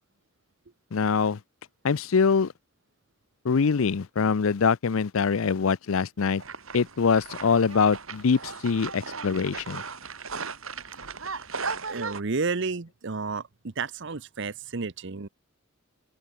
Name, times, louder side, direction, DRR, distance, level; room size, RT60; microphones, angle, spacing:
voice 1, 0.9-1.4 1.8-2.5 3.4-6.4 6.7-9.8, left 5 dB, 75° left, 0.5 m, -24 dB
sound 1, 6.4-12.2, right 4 dB, 80° right, 6.6 m, -36 dB
voice 2, 11.3-15.3, right 4 dB, 60° right, 0.9 m, -32 dB
head